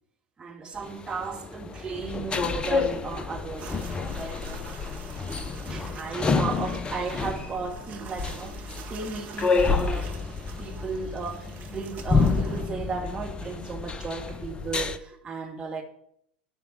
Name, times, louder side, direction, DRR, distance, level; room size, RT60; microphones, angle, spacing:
voice 1, 0.4-3.8 4.1-4.7 5.7-10.2 10.6-15.8, right 5 dB, 20° right, 2.2 m, -35 dB
sound 1, 0.8-15.0, left 4 dB, 20° left, 0.8 m, -29 dB
sound 2, 3.6-12.6, right 7 dB, 35° right, 1.9 m, -45 dB
14.0 x 4.8 x 8.4 m
figure-of-eight pair, 85°, 5 cm